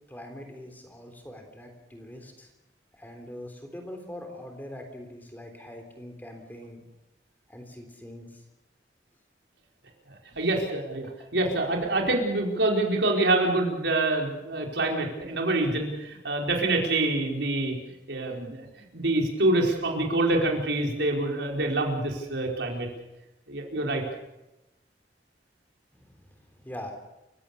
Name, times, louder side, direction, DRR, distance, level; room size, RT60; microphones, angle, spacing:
voice 1, 0.1-2.5 2.9-6.8 7.5-8.4 11.0-11.3 25.9-26.9, left 1 dB, 10° left, 4 dB, 3.6 m, -43 dB
voice 2, 10.3-17.7 18.1-18.6 18.9-22.9 23.5-24.0, right 2 dB, 85° right, 1 dB, 4.8 m, -26 dB
29.0 x 16.5 x 7.0 m, 0.94 s
head